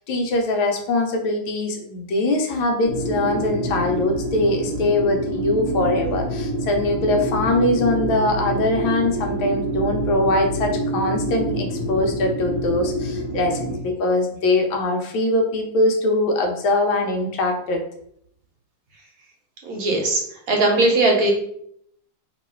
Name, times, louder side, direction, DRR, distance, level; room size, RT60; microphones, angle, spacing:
voice 1, 0.0-17.8, left 2 dB, 80° left, 3 dB, 1.5 m, -22 dB
sound 1, 2.8-13.8, right 1 dB, 40° right, 0.6 m, -26 dB
voice 2, 19.6-20.2 20.5-21.3, right 2 dB, 55° right, 1 dB, 1.1 m, -19 dB
3.0 x 3.0 x 4.3 m, 0.69 s
omnidirectional pair, 2.2 m